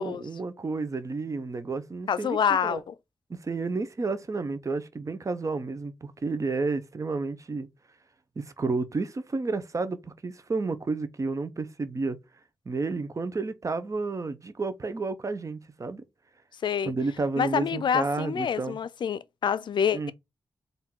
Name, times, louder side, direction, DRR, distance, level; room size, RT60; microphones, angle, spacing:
voice 1, 0.0-2.4 2.6-2.8 3.3-7.7 8.4-12.2 12.7-16.0 16.9-18.8 19.9-20.1, right 3 dB, 40° right, 0.7 m, -31 dB
voice 2, 2.1-2.9 16.6-16.9 17.4-20.1, left 7 dB, 70° left, 0.4 m, -27 dB
3.7 x 2.7 x 4.3 m
cardioid pair, 65°, 8 cm